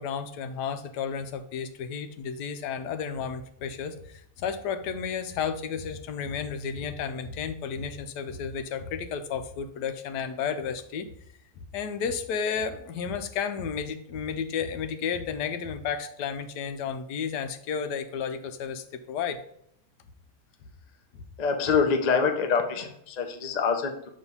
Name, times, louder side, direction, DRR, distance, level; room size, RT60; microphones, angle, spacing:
voice 1, 0.0-11.1 11.6-19.4 21.1-21.3, left 6 dB, 85° left, 10 dB, 1.2 m, -32 dB
voice 2, 21.4-24.1, left 5 dB, 50° left, 5 dB, 0.5 m, -25 dB
6.3 x 3.1 x 5.5 m, 0.70 s
omnidirectional pair, 1.8 m